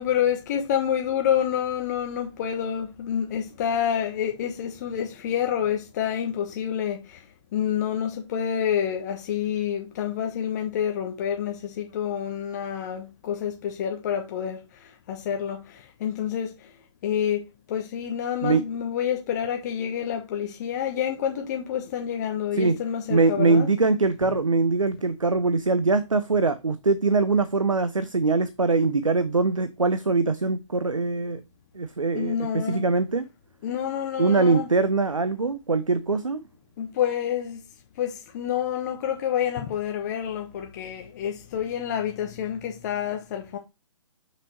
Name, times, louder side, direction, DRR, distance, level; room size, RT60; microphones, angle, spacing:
voice 1, 0.0-16.7 17.0-23.7 32.1-32.8 33.6-34.7 36.8-37.6 38.0-43.6, left 9 dB, 35° left, 0.9 m, -28 dB
voice 2, 23.1-31.4 31.7-33.2 34.2-36.4, right 3 dB, 85° right, 0.7 m, -22 dB
6.0 x 5.9 x 3.0 m
figure-of-eight pair, 130°, 16 cm